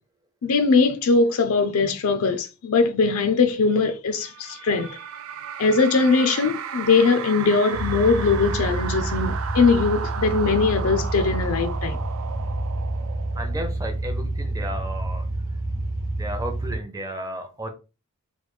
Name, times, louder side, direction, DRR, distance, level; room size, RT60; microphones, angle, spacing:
voice 1, 0.4-5.0 5.6-12.0, left 4 dB, 65° left, 0.5 m, -21 dB
sound 1, 4.2-13.9, right 7 dB, 65° right, 0.4 m, -35 dB
sound 2, 7.7-16.8, right 2 dB, 45° right, 0.8 m, -28 dB
voice 2, 13.3-15.3 16.2-17.7, right 1 dB, 15° right, 0.6 m, -33 dB
3.3 x 2.3 x 3.2 m
head